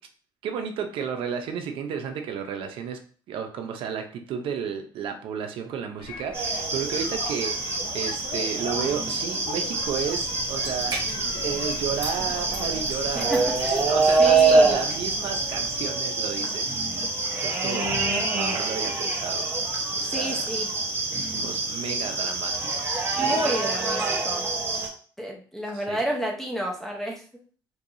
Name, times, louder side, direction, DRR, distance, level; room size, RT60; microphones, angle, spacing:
voice 1, 0.4-3.0 3.3-11.0 11.4-17.1 17.4-18.0 18.3-19.5 19.9-20.4 21.3-24.3 25.7-26.0, right 7 dB, 75° right, 5 dB, 0.7 m, -33 dB
sound 1, 6.0-12.7, left 5 dB, 80° left, 0.7 m, -40 dB
sound 2, 6.3-24.9, right 3 dB, 25° right, 1.0 m, -26 dB
sound 3, 9.8-15.9, right 2 dB, 50° right, 1.0 m, -39 dB
voice 2, 13.1-13.9 14.2-14.8 20.0-20.7 23.1-24.5 25.2-27.2, equal, 5° left, -1 dB, 0.8 m, -30 dB
4.6 x 2.7 x 2.6 m, 0.43 s
cardioid pair, 150°, 9 cm